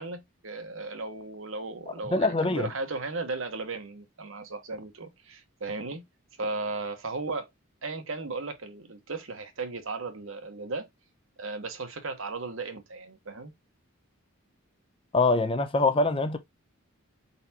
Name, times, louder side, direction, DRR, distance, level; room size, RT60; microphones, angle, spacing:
voice 1, 0.0-6.0 6.4-7.5 7.8-10.9 11.4-13.5, right 3 dB, 70° right, 1.1 m, -36 dB
voice 2, 2.1-2.7 15.1-16.4, left 3 dB, 25° left, 0.5 m, -24 dB
4.6 x 4.1 x 2.8 m
head